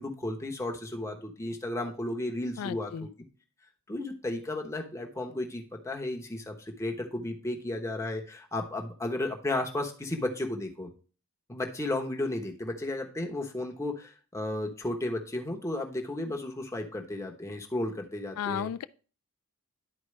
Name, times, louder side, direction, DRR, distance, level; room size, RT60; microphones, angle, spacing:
voice 1, 0.0-3.1 3.9-10.9 11.5-18.7, left 1 dB, 15° left, 1.0 m, -34 dB
voice 2, 2.6-3.1 18.4-18.8, left 8 dB, 80° left, 0.3 m, -34 dB
11.0 x 4.4 x 3.2 m
head